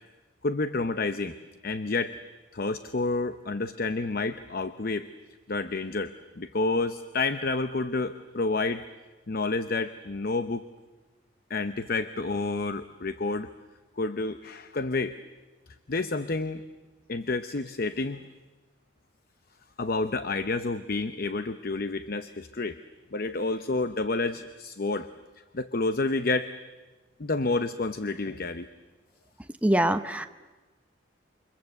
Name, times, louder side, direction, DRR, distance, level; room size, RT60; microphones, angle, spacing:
voice 1, 0.4-1.4 1.6-2.2 2.5-5.1 5.5-8.8 9.3-10.7 11.5-13.5 14.0-15.2 15.9-16.6 17.1-18.3 19.8-22.8 23.1-25.1 25.5-26.5 27.2-28.7, left 3 dB, 50° left, 11 dB, 0.8 m, -29 dB
voice 2, 29.6-30.3, right 1 dB, 5° right, 7 dB, 0.8 m, -23 dB
29.0 x 25.5 x 7.9 m, 1.2 s
head